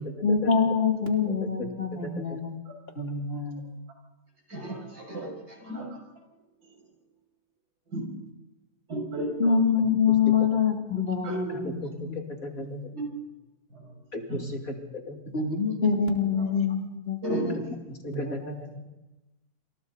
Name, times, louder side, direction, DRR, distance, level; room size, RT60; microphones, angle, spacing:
voice 1, 0.0-2.5 2.9-3.7 9.4-12.1 12.6-12.8 15.3-17.7 18.1-18.5, left 6 dB, 35° left, 1 dB, 3.4 m, -26 dB
voice 2, 1.4-2.2 11.5-12.9 14.1-15.2 18.0-18.5, left 2 dB, 60° left, 2 dB, 3.1 m, -36 dB
voice 3, 4.5-5.9 7.9-8.1 8.9-9.5 11.2-11.6 12.9-13.1 13.7-13.9 14.3-14.4 17.2-17.5, right 1 dB, 70° right, 0 dB, 7.6 m, -33 dB
28.5 x 28.0 x 4.1 m, 1.0 s
omnidirectional pair, 1.7 m